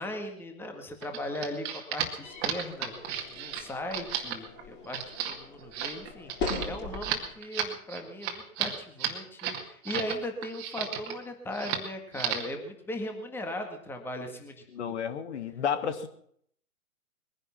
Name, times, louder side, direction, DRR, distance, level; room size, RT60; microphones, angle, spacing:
voice 1, 0.0-15.1, left 1 dB, 5° left, 4 dB, 1.8 m, -38 dB
sound 1, 1.0-10.2 10.4-11.2 11.5-11.9 12.1-12.5, right 9 dB, 25° right, 2.2 m, -33 dB
sound 2, 2.2-7.4, left 4 dB, 25° left, 6.5 m, -40 dB
voice 2, 14.7-16.1, left 7 dB, 50° left, 10 dB, 1.7 m, -31 dB
21.5 x 11.0 x 5.8 m, 0.64 s
hypercardioid pair, 140°, 43 cm